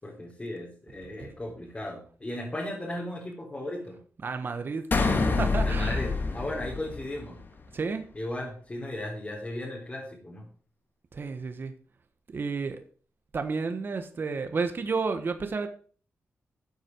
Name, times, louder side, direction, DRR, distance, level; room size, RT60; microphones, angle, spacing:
voice 1, 0.0-4.0 5.6-6.1 6.3-7.4 8.2-10.5, left 1 dB, 25° left, -4 dB, 3.7 m, -36 dB
voice 2, 4.2-6.1 7.7-8.0 11.1-11.7 12.3-12.8 13.3-15.7, right 4 dB, 50° right, 7 dB, 1.4 m, -31 dB
sound 1, 4.9-7.5, left 3 dB, 45° left, 2.3 m, -27 dB
13.5 x 8.0 x 4.7 m, 0.43 s
cardioid pair, 85°, 5 cm